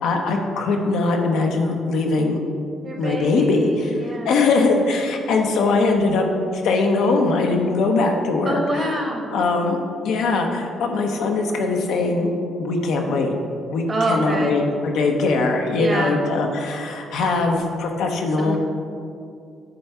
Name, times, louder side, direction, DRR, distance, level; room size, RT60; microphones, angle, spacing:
voice 1, 0.0-2.4 3.0-3.9 4.2-9.0 9.3-9.8 10.0-12.3 12.6-13.3 13.7-18.6, left 3 dB, 85° left, 2 dB, 0.8 m, -21 dB
voice 2, 2.8-4.3 8.4-9.3 13.9-14.6 15.8-16.2 18.4-18.6, right 1 dB, 35° right, 1 dB, 1.2 m, -26 dB
9.4 x 3.4 x 4.3 m, 2.4 s
cardioid pair, 90°, 0 cm